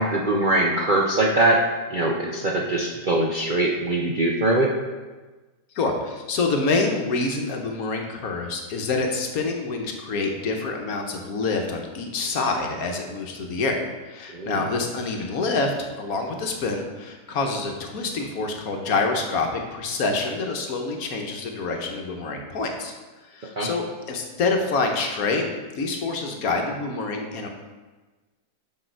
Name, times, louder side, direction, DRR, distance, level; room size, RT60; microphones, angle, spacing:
voice 1, 0.0-1.6 1.9-4.7 14.3-14.7 23.6-23.7, right 2 dB, 50° right, -1 dB, 0.6 m, -22 dB
voice 2, 5.7-22.9 23.2-25.5 25.7-27.5, left 3 dB, 70° left, 3 dB, 1.3 m, -26 dB
6.4 x 6.4 x 4.5 m, 1.2 s
omnidirectional pair, 1.7 m